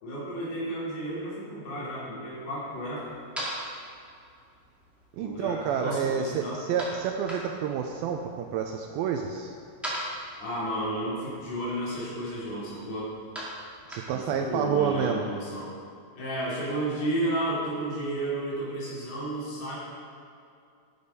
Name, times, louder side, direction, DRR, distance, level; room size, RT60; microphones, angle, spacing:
voice 1, 0.0-3.1 5.2-6.6 10.4-13.1 14.1-15.7 16.2-19.8, right 1 dB, 75° left, -8 dB, 4.8 m, -32 dB
sound 1, 2.7-14.7, right 1 dB, ahead, 1.2 m, -42 dB
voice 2, 5.1-9.5 13.9-15.3, right 7 dB, 80° right, 3 dB, 2.2 m, -29 dB
11.5 x 7.0 x 5.3 m, 2.4 s
omnidirectional pair, 4.6 m